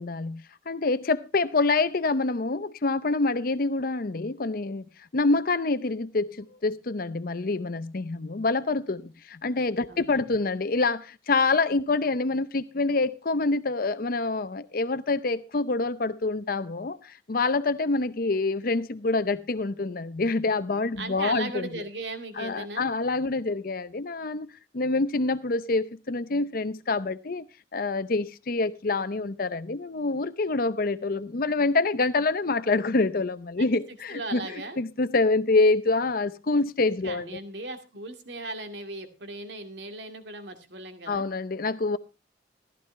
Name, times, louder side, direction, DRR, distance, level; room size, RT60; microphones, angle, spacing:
voice 1, 0.0-4.8 5.1-21.7 22.4-24.5 24.7-27.5 27.7-37.4 41.1-42.0, left 3 dB, 55° left, 0.7 m, -26 dB
voice 2, 9.9-10.4 21.0-22.9 33.6-33.8 34.1-34.8 37.0-41.2, right 2 dB, 80° right, 2.3 m, -37 dB
15.0 x 12.5 x 3.3 m
head